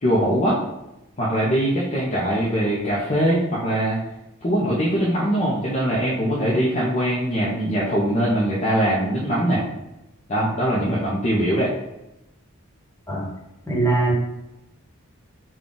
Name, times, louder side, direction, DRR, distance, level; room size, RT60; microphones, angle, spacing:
voice 1, 0.0-0.6 1.2-4.0 4.4-9.6 10.3-11.7, equal, 30° left, -6 dB, 0.6 m, -22 dB
voice 2, 13.7-14.1, right 3 dB, 10° left, -5 dB, 1.0 m, -21 dB
3.8 x 2.3 x 3.6 m, 0.92 s
head